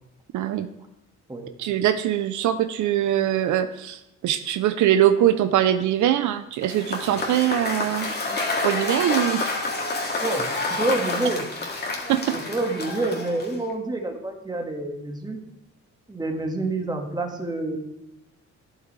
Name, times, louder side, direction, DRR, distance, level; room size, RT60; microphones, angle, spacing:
voice 1, 0.3-0.7 1.6-8.1 8.6-9.4 12.1-12.3, right 11 dB, 75° right, 10 dB, 0.6 m, -22 dB
Cheering / Applause / Crowd, 6.6-13.7, left 2 dB, 35° left, 2.0 m, -28 dB
voice 2, 10.2-11.4 12.3-15.4 16.1-17.8, right 2 dB, 15° right, 3 dB, 1.6 m, -28 dB
12.0 x 8.3 x 3.2 m, 0.87 s
cardioid pair, 90°, 30 cm